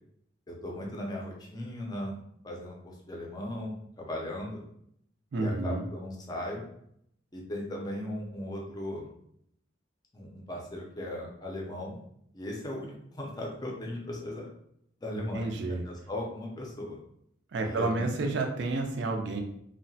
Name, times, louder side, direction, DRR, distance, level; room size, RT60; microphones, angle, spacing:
voice 1, 0.5-2.1 2.4-4.6 5.4-6.6 7.3-9.1 10.1-12.0 12.3-14.5 15.0-17.0 17.6-18.3, left 1 dB, 20° left, -1 dB, 0.5 m, -38 dB
voice 2, 5.3-5.8 15.3-15.8 17.5-19.4, right 2 dB, 60° right, 4 dB, 0.4 m, -30 dB
2.7 x 2.1 x 2.6 m, 0.73 s
head